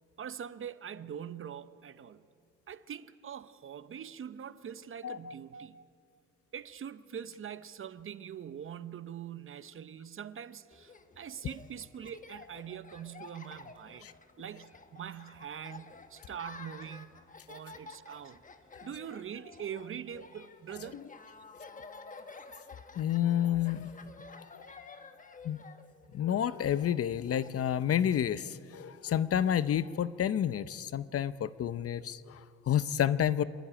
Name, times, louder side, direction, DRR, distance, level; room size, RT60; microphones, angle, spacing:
voice 1, 0.2-2.2 2.7-5.8 6.5-14.1 14.4-17.1 17.5-18.4 18.8-21.1 21.4-21.5, right 8 dB, 45° right, 0.8 m, -43 dB
voice 2, 5.0-5.3 14.0-14.1 20.9-21.0 23.0-23.9 24.3-24.4 25.4-25.6 26.1-33.4, left 10 dB, 50° left, 0.7 m, -30 dB
Laughter, 10.7-27.5, left 4 dB, 25° left, 1.2 m, -52 dB
26.0 x 12.0 x 9.8 m
cardioid pair, 90°, 30 cm